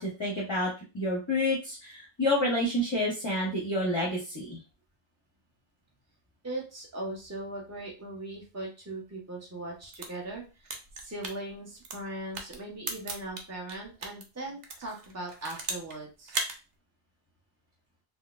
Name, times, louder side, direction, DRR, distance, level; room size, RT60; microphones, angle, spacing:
voice 1, 0.0-4.6, left 1 dB, 30° left, -4 dB, 0.8 m, -29 dB
voice 2, 6.4-16.4, right 1 dB, 15° right, -2 dB, 0.8 m, -39 dB
sound 1, 9.7-14.2 14.6-16.0 16.3-16.6, right 3 dB, 50° right, 0.6 m, -37 dB
3.9 x 2.1 x 2.4 m, 0.31 s
omnidirectional pair, 1.0 m